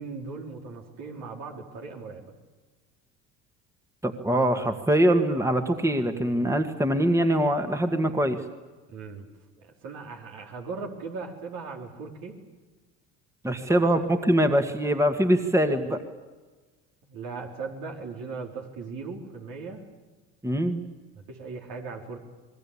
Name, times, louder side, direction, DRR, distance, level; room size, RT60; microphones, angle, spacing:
voice 1, 0.0-2.3 8.9-9.3 9.6-12.4 13.5-13.8 17.0-19.9 21.3-22.2, right 4 dB, 70° right, 1 dB, 4.5 m, -38 dB
voice 2, 4.0-8.4 13.4-16.0 20.4-20.8, right 1 dB, 10° right, 7 dB, 1.9 m, -23 dB
27.0 x 20.5 x 8.6 m, 1.3 s
supercardioid pair, 75°, 36 cm